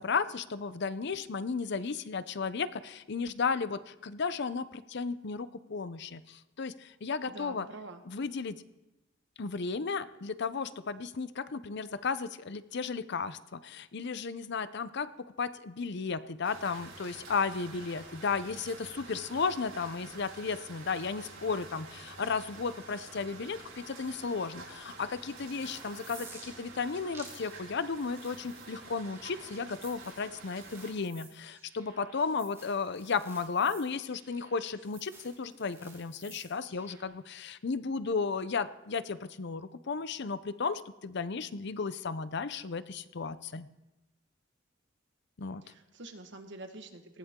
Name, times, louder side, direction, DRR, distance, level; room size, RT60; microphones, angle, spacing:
voice 1, 0.0-7.7 8.1-8.6 9.4-43.7 45.4-45.6, left 5 dB, 60° left, 14 dB, 0.6 m, -34 dB
voice 2, 7.3-8.0 45.6-47.2, right 2 dB, 65° right, 6 dB, 1.6 m, -46 dB
sound 1, 16.4-30.9, right 3 dB, 85° right, 4.8 m, -49 dB
sound 2, 25.2-37.0, right 3 dB, 15° right, 4.5 m, -54 dB
19.0 x 15.0 x 3.7 m, 0.99 s
head